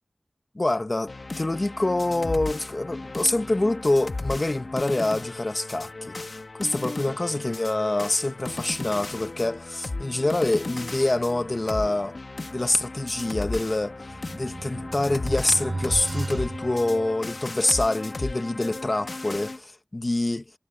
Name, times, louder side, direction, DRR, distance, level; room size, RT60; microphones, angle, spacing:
voice 1, 0.5-6.1 6.5-12.2 12.5-13.9 14.3-20.4, left 2 dB, 50° left, 1.3 m, -26 dB
sound 1, 1.1-19.6, left 2 dB, 80° left, 1.4 m, -35 dB
sound 2, 13.7-17.5, right 2 dB, 65° right, 7.8 m, -35 dB
wide cardioid pair, 45°, 0 cm